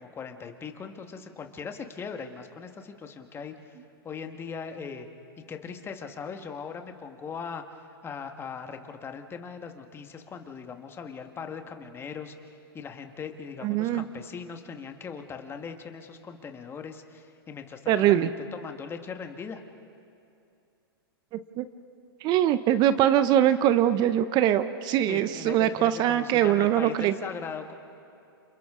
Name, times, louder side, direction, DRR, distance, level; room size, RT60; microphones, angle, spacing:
voice 1, 0.0-3.8 4.0-5.1 5.5-19.6 25.0-27.7, left 6 dB, 20° left, 6 dB, 1.5 m, -40 dB
voice 2, 13.6-14.0 17.9-18.3 21.6-21.7 22.2-27.1, right 11 dB, 35° right, 13 dB, 0.6 m, -22 dB
29.5 x 28.0 x 3.7 m, 2.6 s
hypercardioid pair, 125°, 13 cm